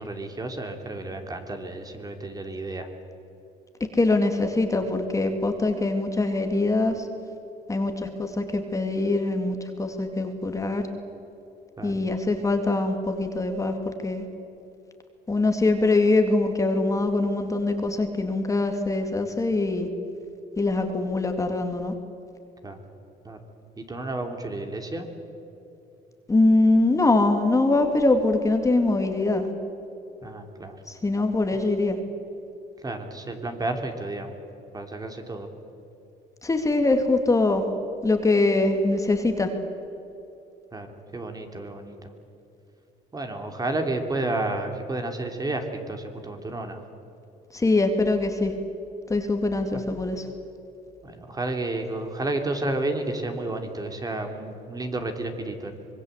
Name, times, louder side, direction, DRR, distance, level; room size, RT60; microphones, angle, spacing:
voice 1, 0.0-2.9 11.8-11.9 22.6-22.8 23.2-23.4 23.8-25.1 30.2-30.8 32.8-34.3 34.7-35.5 40.7-40.9 41.1-42.0 43.1-46.8 49.7-49.8 51.0-55.7, right 2 dB, 20° right, 5 dB, 3.0 m, -31 dB
voice 2, 3.9-7.1 7.7-10.8 11.8-14.2 15.3-19.9 20.6-21.9 26.3-29.5 30.9-32.0 36.4-37.6 38.0-39.5 47.5-48.5 49.1-50.3, left 2 dB, 20° left, 5 dB, 2.4 m, -23 dB
25.5 x 21.5 x 8.2 m, 2.9 s
cardioid pair, 110°, 17 cm